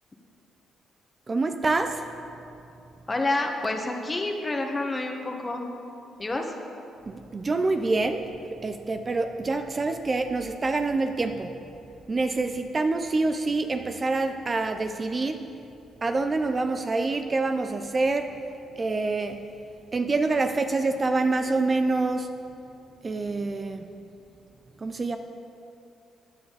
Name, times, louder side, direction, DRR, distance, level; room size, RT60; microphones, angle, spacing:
voice 1, 1.3-2.1 7.1-11.5 12.1-15.4 16.0-18.4 18.8-19.4 19.9-22.4 23.0-23.9 24.8-25.2, right 3 dB, 30° right, 7 dB, 0.6 m, -26 dB
voice 2, 3.1-5.7 6.2-6.4, left 2 dB, 20° left, 3 dB, 1.4 m, -28 dB
16.0 x 9.6 x 4.1 m, 2.7 s
cardioid pair, 90°, 0 cm